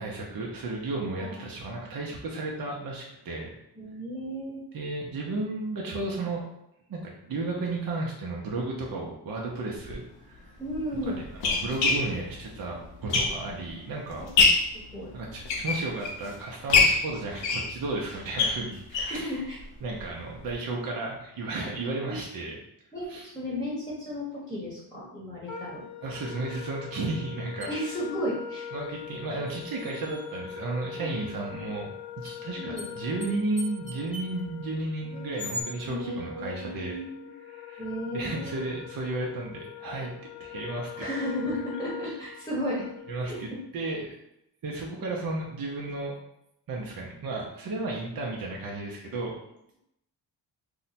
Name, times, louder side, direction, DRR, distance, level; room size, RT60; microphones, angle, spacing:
voice 1, 0.0-3.6 4.7-6.4 6.9-10.5 11.1-14.2 15.1-19.3 19.8-22.6 23.1-23.3 26.0-28.0 28.7-37.0 37.4-37.8 38.1-40.1 40.4-41.0 43.1-43.5 43.7-44.1 44.6-46.2 46.7-49.3, right 2 dB, 55° right, -2 dB, 0.7 m, -33 dB
voice 2, 3.8-4.6 10.6-11.2 14.7-15.1 19.0-19.6 22.1-22.2 22.9-25.9 27.7-28.7 31.0-31.1 31.5-31.6 32.6-32.9 35.1-35.2 35.9-37.3 37.8-38.6 41.0-42.9 43.2-43.4, equal, 10° left, -8 dB, 1.0 m, -34 dB
sound 1, 9.8-9.9 10.7-13.7 14.1-14.8 15.3-16.3 16.7-19.2 19.6-19.7 20.0-20.1 20.4-20.5, left 4 dB, 90° left, 0.7 m, -25 dB
Wind instrument woodwind instrument, 25.5-43.6, left 9 dB, 45° left, 0.6 m, -42 dB
sound 2, 27.6-27.7 29.5-30.5 32.2-32.3 32.8-32.9 33.2-33.3 33.6-34.4 35.4-35.6, left 1 dB, 20° right, 1.0 m, -39 dB
2.7 x 2.2 x 4.1 m, 0.80 s
cardioid pair, 80°, 43 cm